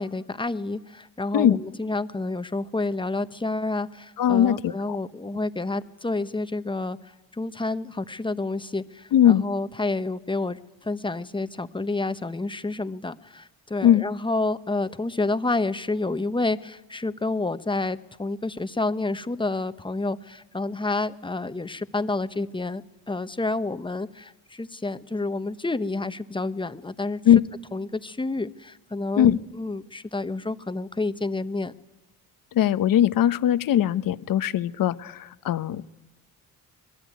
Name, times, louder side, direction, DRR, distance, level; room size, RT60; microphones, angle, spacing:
voice 1, 0.0-7.0 7.3-27.2 27.7-29.3 29.6-31.7, left 2 dB, 15° left, 12 dB, 1.1 m, -29 dB
voice 2, 4.2-5.0 9.1-9.4 13.8-14.0 27.2-27.4 29.2-29.4 32.5-35.9, left 10 dB, 70° left, 14 dB, 1.1 m, -20 dB
25.5 x 21.5 x 9.5 m, 1.0 s
cardioid pair, 90°, 35 cm